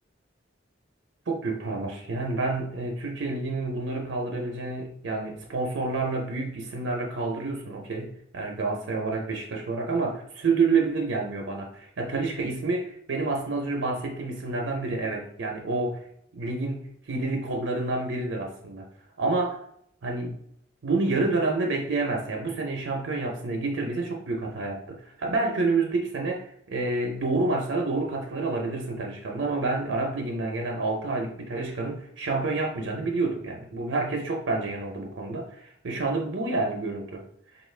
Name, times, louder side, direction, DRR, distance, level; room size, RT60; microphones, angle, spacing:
voice 1, 1.3-16.0 16.3-18.9 19.2-19.6 20.0-20.4 20.8-37.2, right 3 dB, 75° right, 1 dB, 0.6 m, -28 dB
4.0 x 2.4 x 3.2 m, 0.71 s
head